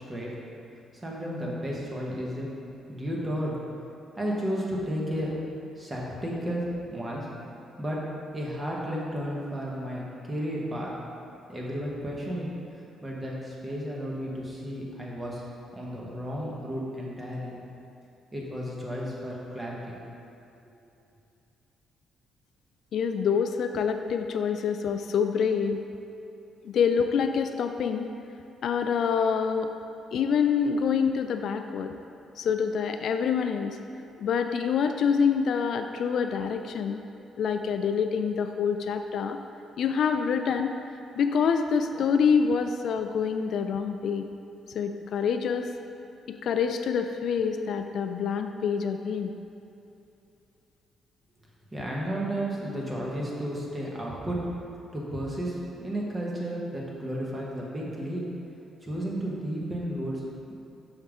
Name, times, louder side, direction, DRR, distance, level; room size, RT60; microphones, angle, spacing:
voice 1, 1.0-2.5 2.9-3.6 4.2-5.4 5.8-7.3 7.8-8.1 8.3-10.9 11.5-12.5 13.0-15.4 15.7-17.6 18.3-20.0 51.7-54.5 54.9-58.3 58.8-60.2, equal, 20° right, -4 dB, 1.4 m, -33 dB
voice 2, 22.9-25.8 26.6-28.1 28.6-29.7 30.1-31.9 32.4-33.8 34.2-37.0 37.4-39.4 39.8-40.8 41.1-44.3 44.7-45.7 46.3-49.3, left 6 dB, 65° left, 7 dB, 0.3 m, -26 dB
6.6 x 5.3 x 3.6 m, 2.7 s
cardioid pair, 90°, 0 cm